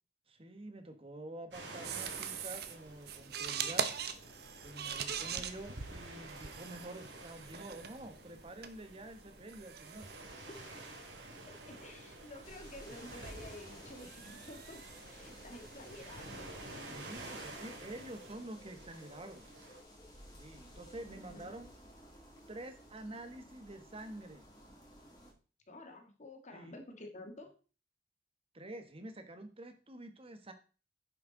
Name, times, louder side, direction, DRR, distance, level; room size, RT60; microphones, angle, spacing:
voice 1, 0.3-3.9 4.6-10.1 16.9-19.5 20.4-21.7 22.5-24.5 26.5-26.7 28.5-30.5, right 1 dB, 35° right, 8 dB, 1.3 m, -48 dB
sound 1, 1.5-19.8, right 2 dB, 80° right, 3.1 m, -51 dB
sound 2, 1.8-18.3, right 7 dB, 65° right, 1.0 m, -44 dB
voice 2, 10.5-10.8 11.7-14.8 15.1-16.5 17.5-17.8 21.1-21.5 25.7-27.5, left 1 dB, 45° left, 4 dB, 1.7 m, -51 dB
sound 3, 12.4-25.3, equal, 25° left, 2.7 m, -56 dB
9.9 x 7.4 x 3.9 m, 0.36 s
head